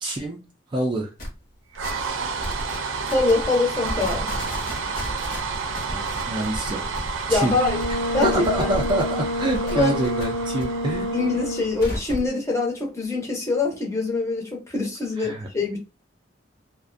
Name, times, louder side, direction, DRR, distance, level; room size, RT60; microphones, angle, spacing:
voice 1, 0.0-0.4 0.7-1.1 5.9-6.9 7.3-7.5 7.9-8.0 8.2-11.1 15.2-15.5, right 2 dB, 25° right, 0.3 m, -26 dB
sound 1, 1.2-1.3 1.7-2.1 2.4-2.8 3.1-3.6 3.8-9.0 9.4-10.6 10.9-12.3, equal, 50° left, 0.8 m, -34 dB
sound 2, 1.7-12.0, right 4 dB, 85° right, 0.4 m, -31 dB
voice 2, 3.0-4.3 7.3-7.8 8.1-8.3 8.6-8.7 9.7-9.9 11.1-15.8, left 3 dB, 15° left, 0.6 m, -24 dB
Brass instrument, 7.4-11.8, left 1 dB, 80° left, 0.7 m, -28 dB
2.4 x 2.1 x 2.5 m
head